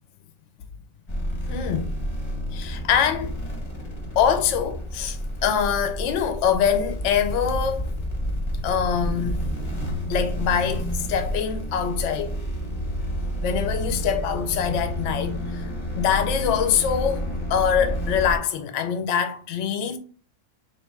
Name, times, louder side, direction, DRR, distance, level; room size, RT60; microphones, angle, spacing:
sound 1, 1.1-18.4, equal, 25° left, 1.0 m, -30 dB
voice 1, 1.5-1.9 2.5-3.3 4.2-7.9 8.6-9.4 10.1-12.4 13.4-15.7 16.0-20.0, left 8 dB, 75° left, 0.9 m, -24 dB
3.1 x 2.8 x 4.6 m
omnidirectional pair, 1.3 m